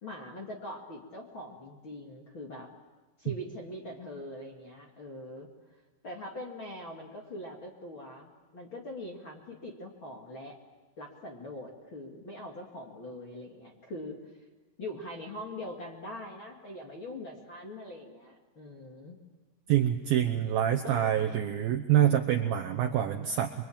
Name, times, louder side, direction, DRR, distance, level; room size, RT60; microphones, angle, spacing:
voice 1, 0.0-2.7 3.2-5.5 6.0-10.6 11.0-14.2 14.8-19.2 20.7-21.1, left 1 dB, 40° left, -1 dB, 2.0 m, -42 dB
voice 2, 19.7-23.5, right 11 dB, 75° right, 3 dB, 2.2 m, -26 dB
27.0 x 23.0 x 8.7 m, 1.3 s
omnidirectional pair, 5.4 m